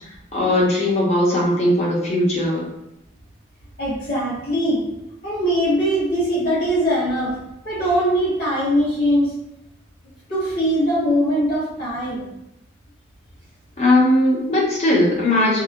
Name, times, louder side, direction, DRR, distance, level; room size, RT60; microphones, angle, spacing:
voice 1, 0.3-2.7 13.8-15.6, left 1 dB, 35° left, -5 dB, 0.7 m, -18 dB
voice 2, 3.8-4.8 5.2-7.3 7.6-9.3 10.3-12.3, equal, 60° left, -9 dB, 1.3 m, -21 dB
2.9 x 2.0 x 2.5 m, 0.85 s
head